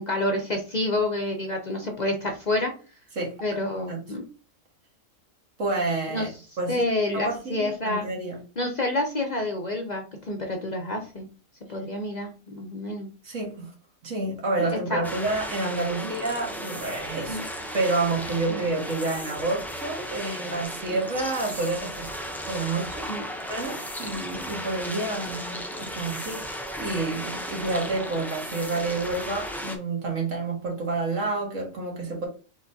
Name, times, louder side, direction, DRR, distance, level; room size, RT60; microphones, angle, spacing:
voice 1, 0.0-2.7 3.4-4.2 6.1-6.3 6.7-8.1 8.6-11.3 11.7-13.1 14.6-15.3 16.0-16.1 17.3-17.4 18.5-18.6 23.1-23.2, left 1 dB, 45° left, 0.7 m, -28 dB
voice 2, 5.6-6.3 6.6-6.9 7.1-8.4 13.2-13.7 14.0-17.4 17.7-23.1 23.5-32.3, right 3 dB, 75° right, 1.9 m, -29 dB
sound 1, 15.0-29.8, equal, 5° left, 0.3 m, -35 dB
4.6 x 3.8 x 2.7 m
omnidirectional pair, 1.3 m